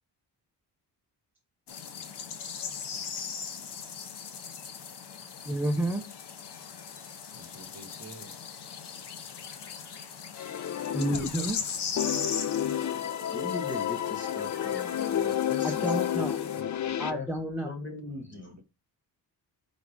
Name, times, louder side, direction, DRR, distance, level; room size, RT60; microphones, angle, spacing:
sound 1, 1.7-16.6, left 6 dB, 75° left, 0.8 m, -39 dB
voice 1, 5.4-6.0 10.9-11.6 15.6-16.4 17.0-17.7, right 1 dB, 5° right, 0.7 m, -30 dB
voice 2, 7.3-8.4 16.5-16.9 18.0-18.6, right 2 dB, 45° right, 1.0 m, -50 dB
sound 2, 10.4-11.6 12.0-17.1, left 10 dB, 45° left, 0.5 m, -30 dB
voice 3, 13.3-16.0 17.1-17.3 17.6-18.6, left 3 dB, 25° left, 1.3 m, -39 dB
4.7 x 4.1 x 4.9 m
wide cardioid pair, 150°, 41 cm